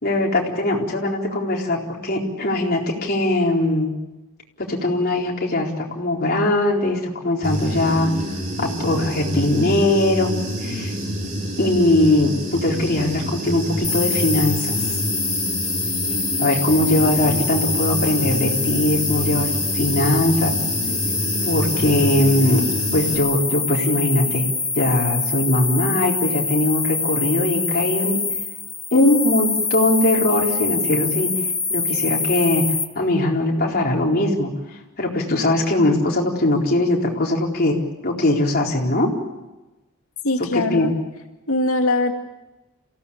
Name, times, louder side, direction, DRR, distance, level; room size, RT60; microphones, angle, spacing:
voice 1, 0.0-3.9 4.6-10.3 10.6-11.0 11.6-15.0 16.4-20.6 21.4-22.6 22.9-24.5 24.7-28.2 28.9-37.8 38.0-39.1 40.5-40.9, left 1 dB, 45° left, -1 dB, 4.2 m, -21 dB
Human voice / Buzz, 7.4-23.2, equal, 40° right, 4.7 m, -27 dB
sound 1, 13.8-32.8, left 4 dB, 10° left, 1.4 m, -25 dB
voice 2, 40.2-40.9 41.5-42.1, left 2 dB, 75° left, 4 dB, 2.2 m, -21 dB
28.0 x 17.0 x 8.7 m, 1.1 s
head